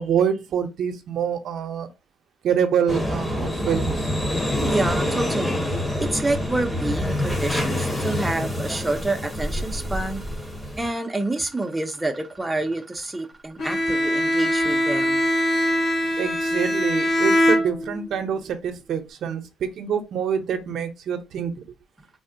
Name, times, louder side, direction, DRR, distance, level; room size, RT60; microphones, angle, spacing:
voice 1, 0.0-1.9 2.4-4.1 16.2-21.5, right 8 dB, 70° right, 0.5 m, -26 dB
sound 1, 2.9-10.9, left 1 dB, 10° left, 0.8 m, -26 dB
voice 2, 4.6-5.6 6.0-10.3 10.8-15.3, right 2 dB, 10° right, 0.5 m, -28 dB
Bowed string instrument, 13.6-18.2, equal, 55° left, 0.7 m, -22 dB
3.4 x 2.0 x 2.5 m
cardioid pair, 90°, 0 cm